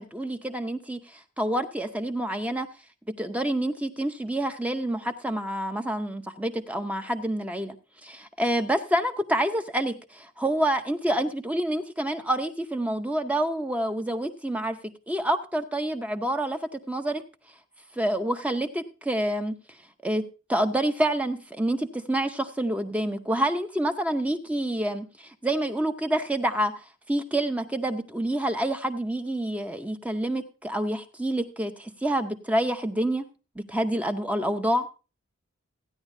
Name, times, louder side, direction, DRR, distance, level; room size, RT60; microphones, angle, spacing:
voice 1, 0.0-2.7 3.1-7.8 8.0-17.2 17.9-19.6 20.0-26.7 27.1-33.2 33.6-34.9, right 1 dB, 5° right, 7 dB, 0.6 m, -28 dB
15.0 x 9.8 x 2.6 m, 0.32 s
head